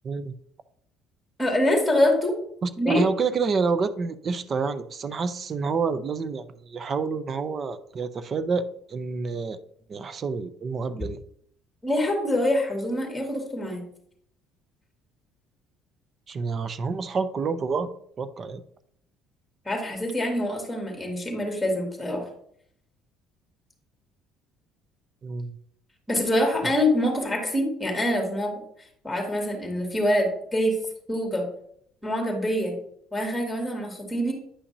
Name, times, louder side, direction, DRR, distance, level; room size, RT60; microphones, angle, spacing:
voice 1, 1.4-2.3 2.8-3.0 11.8-13.8 19.6-22.2 26.1-28.5 29.0-30.8 31.1-31.5 32.0-32.7 33.1-34.3, left 1 dB, 5° left, 1 dB, 2.4 m, -25 dB
voice 2, 2.6-9.6 9.9-11.2 16.3-17.9 18.2-18.6 25.2-25.5 26.6-26.7, right 4 dB, 40° right, 13 dB, 0.6 m, -28 dB
9.7 x 5.7 x 2.8 m, 0.67 s
cardioid pair, 105°, 0 cm